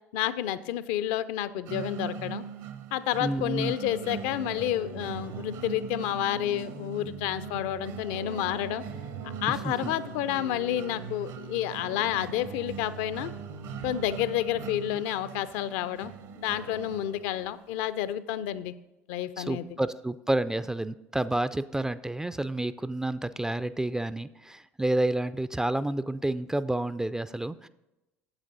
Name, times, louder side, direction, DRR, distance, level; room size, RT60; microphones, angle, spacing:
voice 1, 0.1-2.4 2.9-8.8 9.4-13.3 13.8-18.7 19.1-19.8, left 12 dB, 60° left, 15 dB, 0.5 m, -30 dB
sound 1, 1.7-17.6, right 7 dB, 55° right, 0.7 m, -43 dB
voice 2, 3.2-3.8 9.5-9.9 19.4-27.7, right 1 dB, 10° right, 14 dB, 0.3 m, -30 dB
sound 2, 3.8-14.9, right 4 dB, 80° right, 1.3 m, -42 dB
8.9 x 7.6 x 3.9 m, 0.96 s
figure-of-eight pair, 65°, 7 cm